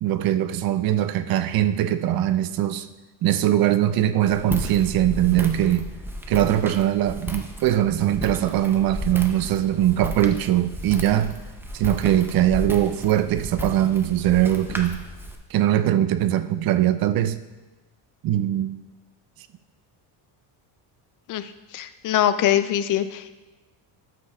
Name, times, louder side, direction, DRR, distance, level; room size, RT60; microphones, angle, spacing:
voice 1, 0.0-2.9 3.2-5.8 6.3-11.3 11.7-15.0 15.5-17.4 18.2-18.7, right 12 dB, 50° right, 12 dB, 0.6 m, -21 dB
Walk footsteps, 4.2-15.4, equal, 5° right, 0.5 m, -34 dB
voice 2, 21.7-23.3, left 11 dB, 45° left, 12 dB, 0.5 m, -22 dB
12.5 x 7.5 x 2.3 m, 1.2 s
cardioid pair, 135°, 46 cm